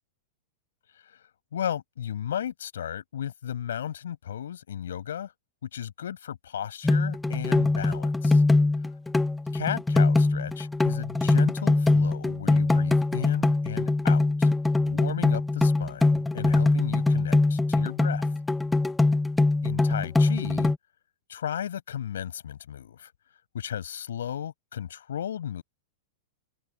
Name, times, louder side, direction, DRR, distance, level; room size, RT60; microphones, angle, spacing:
voice 1, 1.5-5.3 5.6-8.4 9.5-14.5 14.8-18.2 19.6-20.7 21.3-23.1 23.5-25.6, left 9 dB, 75° left, 5.4 m, -34 dB
sound 1, 6.8-20.8, left 2 dB, 10° left, 0.8 m, -23 dB
hypercardioid pair, 110°, 0 cm